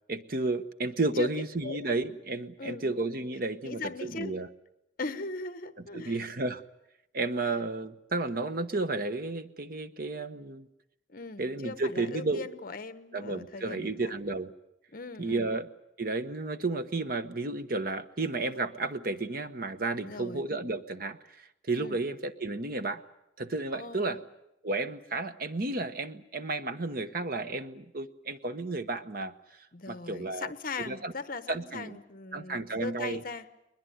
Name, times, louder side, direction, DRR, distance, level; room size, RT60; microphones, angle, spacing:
voice 1, 0.1-4.5 5.9-6.6 7.1-10.7 11.4-12.4 13.1-14.5 15.2-15.7 16.0-23.0 23.4-24.2 24.6-29.3 29.9-30.5 30.9-31.1 31.5-32.0 32.3-33.2, right 2 dB, 50° right, 11 dB, 1.1 m, -32 dB
voice 2, 2.6-2.9 3.6-4.3 5.0-6.2 7.4-7.5 11.1-14.1 14.9-15.5 20.0-20.4 21.8-22.0 23.7-24.2 29.7-33.5, left 3 dB, 50° left, 11 dB, 1.1 m, -39 dB
21.5 x 21.0 x 9.4 m, 0.87 s
head